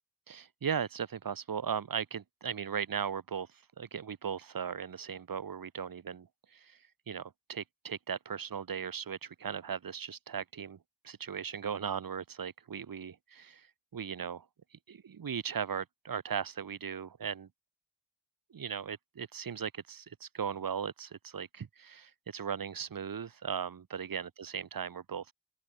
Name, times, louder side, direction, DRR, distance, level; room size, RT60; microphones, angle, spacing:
voice 1, 0.3-3.5 3.8-6.3 6.5-6.8 7.1-10.8 11.0-13.7 13.9-14.4 14.9-17.5 18.5-25.3, right 7 dB, 55° right, 1.1 m, -37 dB
open air
wide cardioid pair, 90°, 41 cm